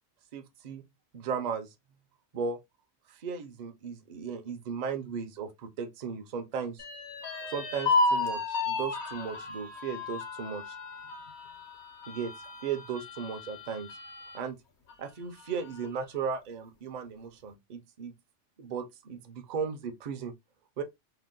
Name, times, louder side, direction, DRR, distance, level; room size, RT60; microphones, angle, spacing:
voice 1, 0.3-0.8 1.1-1.7 2.3-2.6 3.1-6.8 7.4-10.8 12.1-13.9 14.3-14.6 15.0-18.1 18.6-20.3 20.8-20.9, right 6 dB, 50° right, 0.5 m, -36 dB
sound 1, 6.8-14.4 14.9-15.0 15.4-16.0, left 3 dB, 65° left, 1.0 m, -33 dB
2.7 x 2.1 x 3.5 m
omnidirectional pair, 1.2 m